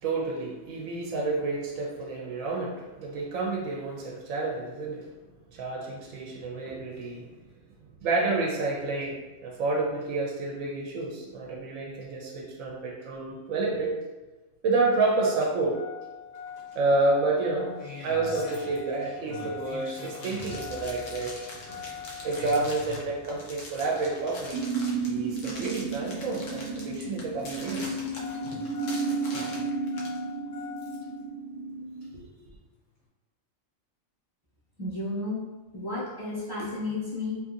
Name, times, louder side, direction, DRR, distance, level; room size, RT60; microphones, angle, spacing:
voice 1, 0.0-5.0 5.5-7.3 8.0-14.0 14.6-15.8 16.7-21.5 22.2-24.6 25.0-28.0 32.1-32.2, right 3 dB, 85° right, -2 dB, 1.0 m, -29 dB
Engine starting, 15.3-31.2 32.4-32.5, left 5 dB, 40° left, 0.5 m, -43 dB
sound 1, 20.1-30.2, left 2 dB, 75° left, 1.0 m, -43 dB
sound 2, 24.5-32.1, right 4 dB, 55° right, 0.7 m, -33 dB
voice 2, 34.8-35.4 35.7-37.4, left 2 dB, 25° right, -9 dB, 0.6 m, -32 dB
2.8 x 2.6 x 2.4 m, 1.2 s
omnidirectional pair, 1.3 m